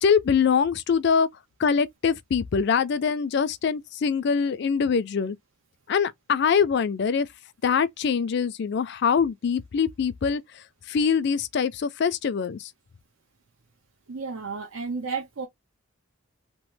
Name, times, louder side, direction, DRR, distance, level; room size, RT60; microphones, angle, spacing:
voice 1, 0.0-1.3 1.6-5.4 5.9-7.3 7.6-12.7, left 6 dB, 55° left, 0.4 m, -24 dB
voice 2, 14.1-15.5, right 5 dB, 80° right, 0.7 m, -32 dB
3.0 x 2.0 x 3.1 m
head